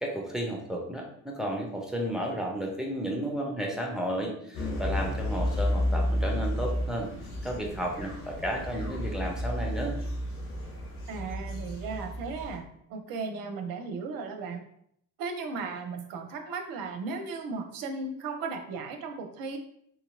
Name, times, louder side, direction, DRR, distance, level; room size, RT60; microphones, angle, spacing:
voice 1, 0.0-7.1 7.4-10.0, equal, ahead, -1 dB, 0.7 m, -33 dB
sound 1, 4.5-12.6, left 1 dB, 90° left, 0.6 m, -32 dB
voice 2, 11.1-12.6 12.9-14.6 15.2-19.6, right 4 dB, 55° right, 5 dB, 0.6 m, -36 dB
2.8 x 2.7 x 2.5 m, 0.69 s
figure-of-eight pair, 50°, 44 cm